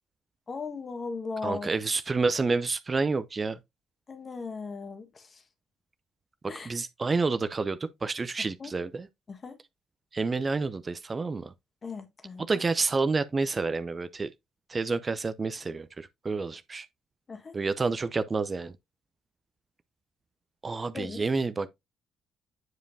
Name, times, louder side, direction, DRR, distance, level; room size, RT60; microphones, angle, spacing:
voice 1, 0.5-1.7 4.1-5.4 6.5-6.7 8.6-8.7 9.3-9.6 11.8-12.5 17.3-17.5 20.9-21.2, left 4 dB, 40° left, 1.5 m, -37 dB
voice 2, 1.4-3.6 6.4-9.1 10.1-11.5 12.4-14.3 14.7-16.9 17.5-18.7 20.6-21.7, right 4 dB, 35° right, 0.6 m, -29 dB
9.3 x 5.1 x 2.7 m
hypercardioid pair, 45°, 0 cm